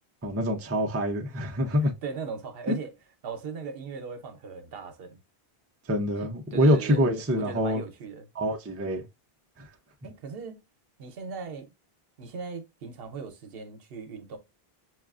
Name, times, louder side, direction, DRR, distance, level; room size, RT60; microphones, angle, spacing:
voice 1, 0.2-1.9 5.9-7.8 8.4-9.0 9.6-9.7, equal, 20° right, 0.4 m, -25 dB
voice 2, 1.8-2.9 3.2-5.2 6.5-7.0 7.4-8.3 10.0-10.6 11.0-11.7 12.2-14.4, right 5 dB, 70° right, 0.9 m, -38 dB
6.0 x 2.4 x 2.3 m
omnidirectional pair, 1.0 m